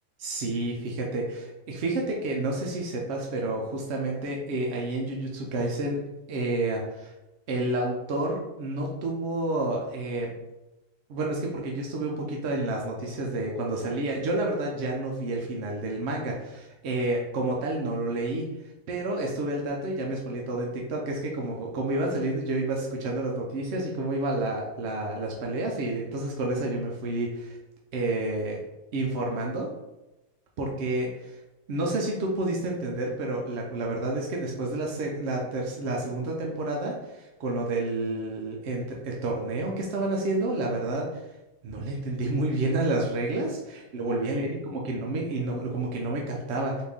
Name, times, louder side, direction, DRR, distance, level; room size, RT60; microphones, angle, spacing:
voice 1, 0.2-6.0 6.3-7.1 7.5-10.3 11.1-18.5 18.9-27.6 27.9-28.6 28.9-29.7 30.6-31.4 31.7-41.2 41.6-46.8, right 2 dB, 70° right, -1 dB, 0.6 m, -29 dB
4.2 x 2.5 x 3.5 m, 1.0 s
omnidirectional pair, 1.8 m